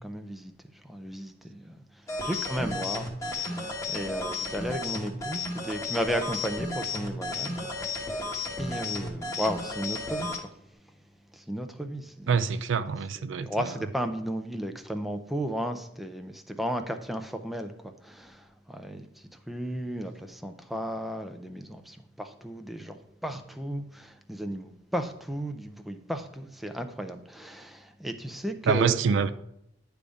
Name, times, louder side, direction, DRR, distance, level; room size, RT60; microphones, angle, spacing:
voice 1, 0.0-8.3 8.6-10.5 11.3-12.3 13.2-29.0, equal, ahead, 0.5 m, -35 dB
sound 1, 2.1-10.4, left 2 dB, 15° left, 1.0 m, -33 dB
voice 2, 12.3-13.5 28.7-29.3, right 5 dB, 80° right, 0.4 m, -25 dB
9.8 x 3.5 x 5.2 m
head